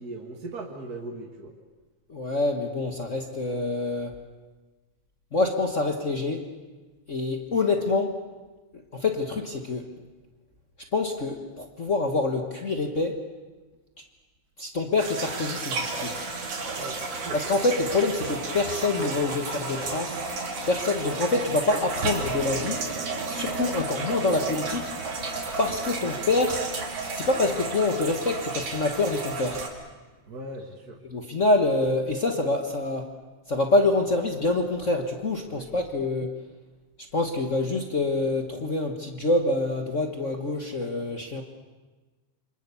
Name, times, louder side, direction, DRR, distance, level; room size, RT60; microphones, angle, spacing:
voice 1, 0.0-1.5 16.7-17.4 30.3-31.0 35.5-35.7, right 2 dB, 35° right, 1 dB, 2.0 m, -39 dB
voice 2, 2.1-4.1 5.3-6.4 7.1-8.2 8.9-9.9 10.9-13.2 14.6-16.1 17.3-20.2 20.7-22.8 23.3-24.9 25.6-26.6 27.1-29.6 31.1-33.1 33.5-36.3 37.1-41.4, left 2 dB, 45° left, 4 dB, 0.9 m, -26 dB
sound 1, 15.0-29.7, right 3 dB, 55° right, 3.6 m, -32 dB
27.5 x 25.0 x 7.0 m, 1.3 s
omnidirectional pair, 3.4 m